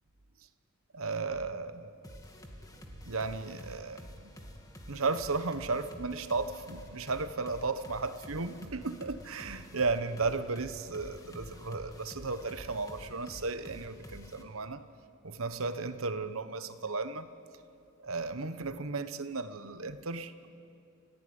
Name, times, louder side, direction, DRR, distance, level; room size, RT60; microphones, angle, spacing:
voice 1, 0.9-2.0 3.1-4.3 4.9-14.8 15.2-17.3 18.0-20.3, right 3 dB, 70° right, 11 dB, 1.2 m, -34 dB
sound 1, 2.0-14.4, equal, 15° left, 2.1 m, -49 dB
30.0 x 15.0 x 9.7 m, 2.6 s
head